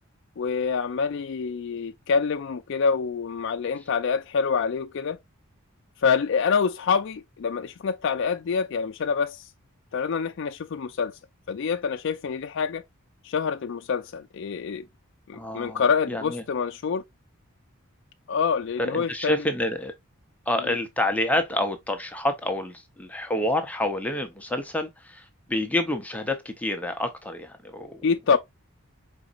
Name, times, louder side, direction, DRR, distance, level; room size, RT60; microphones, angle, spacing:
voice 1, 0.4-5.2 6.0-9.5 9.9-11.2 11.5-12.8 13.2-14.8 15.3-17.0 18.3-19.4 20.7-20.8 28.0-28.4, left 5 dB, 55° left, 0.4 m, -26 dB
voice 2, 15.3-16.4 18.8-19.9 20.5-28.1, left 1 dB, 5° left, 0.6 m, -28 dB
5.0 x 4.1 x 2.3 m
head